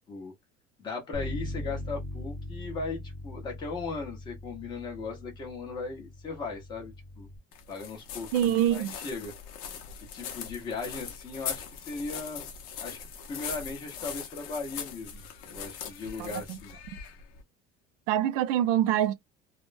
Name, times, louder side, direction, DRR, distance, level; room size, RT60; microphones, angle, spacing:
voice 1, 0.8-7.3 7.7-9.3 10.0-12.4 12.8-16.7, left 3 dB, 25° left, 1.1 m, -38 dB
Bass guitar, 1.1-7.4, left 1 dB, 20° right, 0.7 m, -40 dB
sound 1, 7.5-17.4, left 8 dB, 55° left, 0.8 m, -41 dB
voice 2, 8.3-8.9 16.2-16.6 18.1-19.1, right 11 dB, 80° right, 0.5 m, -25 dB
3.4 x 2.1 x 2.6 m
cardioid pair, 175°, 18 cm